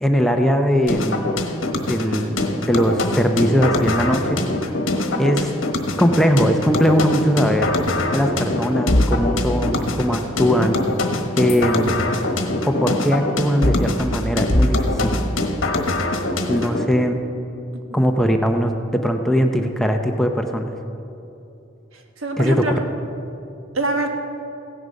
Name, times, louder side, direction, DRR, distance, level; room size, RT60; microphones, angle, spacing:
voice 1, 0.0-1.3 1.9-4.4 5.2-5.5 6.0-7.7 8.1-10.8 11.4-12.0 12.6-15.1 16.5-17.2 17.9-20.6 22.4-22.6, equal, ahead, 4 dB, 0.5 m, -20 dB
sound 1, 0.9-16.9, left 2 dB, 70° left, 1.2 m, -23 dB
voice 2, 4.9-5.3 17.9-18.2 21.9-22.8 23.7-24.1, right 2 dB, 75° right, 4 dB, 1.4 m, -26 dB
16.0 x 10.0 x 5.2 m, 2.8 s
head